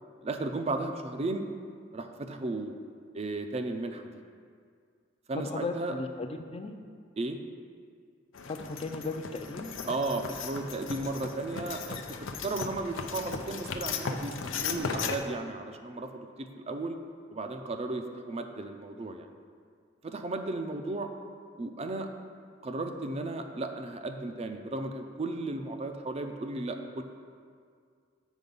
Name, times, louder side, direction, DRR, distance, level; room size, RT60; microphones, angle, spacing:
voice 1, 0.2-1.5 1.9-2.8 3.1-4.1 5.3-6.0 7.2-7.4 9.9-17.0 17.3-19.3 20.0-21.1 21.6-22.1 22.6-27.0, right 2 dB, 35° right, 6 dB, 0.5 m, -35 dB
voice 2, 5.5-6.7 8.5-9.7, left 3 dB, 30° left, 6 dB, 0.5 m, -36 dB
sound 1, 8.3-15.2, left 5 dB, 90° left, 0.5 m, -37 dB
8.1 x 5.0 x 5.3 m, 2.1 s
head